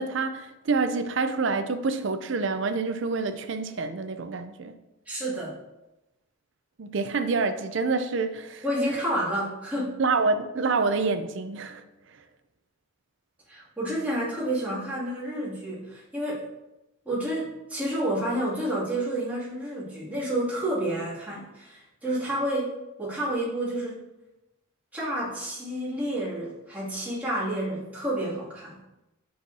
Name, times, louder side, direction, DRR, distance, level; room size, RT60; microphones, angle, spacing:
voice 1, 0.0-4.7 6.8-8.6 10.0-11.8, right 4 dB, 60° right, 0.5 m, -27 dB
voice 2, 5.1-5.6 8.6-10.0 13.5-16.5 17.1-24.0 24.9-28.8, right 1 dB, 10° right, 2.4 m, -30 dB
8.3 x 6.3 x 2.7 m
head